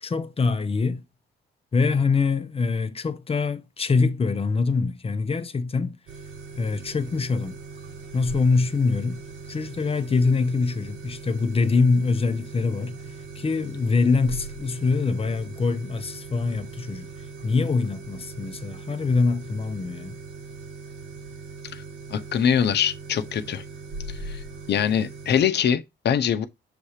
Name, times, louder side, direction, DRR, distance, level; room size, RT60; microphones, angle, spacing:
voice 1, 0.0-1.0 1.7-6.0 6.6-7.6 8.1-9.2 9.5-13.0 13.3-17.1 17.4-20.2, left 4 dB, 30° left, 0.8 m, -24 dB
sound 1, 6.1-25.4, right 3 dB, 75° right, 1.9 m, -40 dB
voice 2, 22.1-23.6 24.1-24.4 24.7-26.5, left 8 dB, 60° left, 0.9 m, -23 dB
7.0 x 2.8 x 4.9 m
cardioid pair, 90°, 20 cm